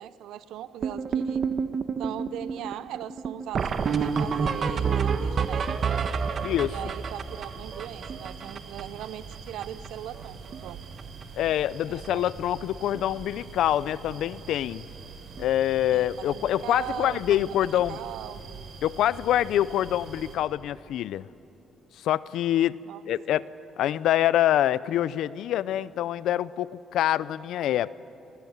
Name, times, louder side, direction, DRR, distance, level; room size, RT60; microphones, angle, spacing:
voice 1, 0.0-1.4 2.0-5.9 6.6-10.8 11.8-12.3 15.9-18.4 22.9-23.0, right 11 dB, 85° right, 15 dB, 0.8 m, -39 dB
sound 1, 0.8-9.0 9.3-9.4 9.6-9.9 10.1-10.7 11.0-11.2 12.0-12.1 12.6-12.7 12.9-13.1 15.4-15.5 17.8-17.9, right 6 dB, 50° right, 1.2 m, -29 dB
sound 2, 3.6-20.4, right 5 dB, 70° right, 4.6 m, -44 dB
voice 2, 6.4-6.8 11.4-14.9 15.4-18.0 18.8-21.3 22.0-22.8 23.1-23.5 23.8-27.9, left 12 dB, 80° left, 19 dB, 0.5 m, -25 dB
27.0 x 17.5 x 9.6 m, 2.8 s
cardioid pair, 90°, 0 cm